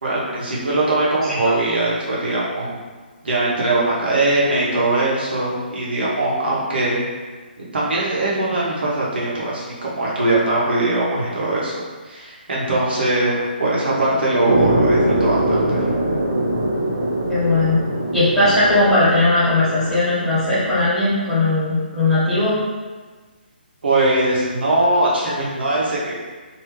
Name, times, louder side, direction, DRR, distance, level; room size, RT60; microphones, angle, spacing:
voice 1, 0.0-2.8 3.2-7.0 7.7-15.9 23.8-26.1, right 2 dB, 70° right, -6 dB, 1.2 m, -21 dB
sound 1, 14.5-20.8, right 1 dB, 50° right, 0.8 m, -22 dB
voice 2, 17.3-17.8 18.1-22.6, left 2 dB, 5° left, -13 dB, 1.5 m, -18 dB
3.2 x 2.9 x 3.2 m, 1.4 s
figure-of-eight pair, 145°, 6 cm